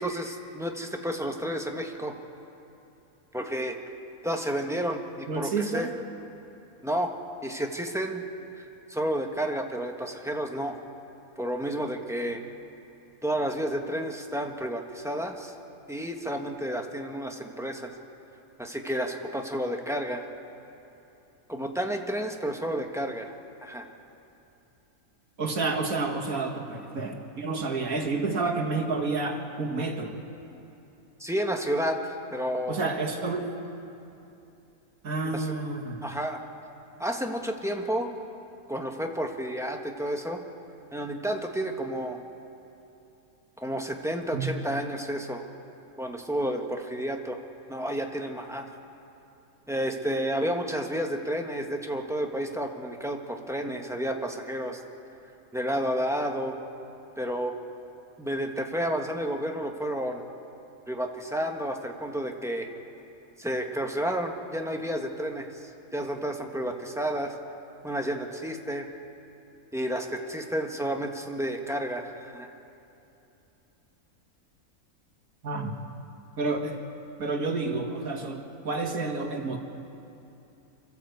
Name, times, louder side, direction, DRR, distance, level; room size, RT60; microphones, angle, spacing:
voice 1, 0.0-2.1 3.3-3.8 4.2-5.9 6.8-7.1 7.4-8.2 8.6-8.7 8.9-10.8 11.4-12.4 13.2-15.5 15.9-17.9 18.6-20.3 21.5-23.4 23.6-23.9 31.2-32.9 35.2-35.6 36.0-36.4 37.0-38.1 38.7-40.4 40.9-42.2 43.6-45.4 46.0-47.4 47.7-48.7 49.7-54.8 55.5-56.6 57.2-57.5 58.2-60.2 60.9-62.7 63.4-67.3 67.8-68.9 69.7-72.5, equal, ahead, 2 dB, 1.2 m, -31 dB
voice 2, 5.3-5.9 25.4-30.1 32.7-33.5 35.0-36.0 44.3-44.5 75.4-75.9 76.4-76.8 77.2-79.6, right 3 dB, 75° right, 2 dB, 2.3 m, -30 dB
26.0 x 13.5 x 8.1 m, 2.9 s
omnidirectional pair, 1.5 m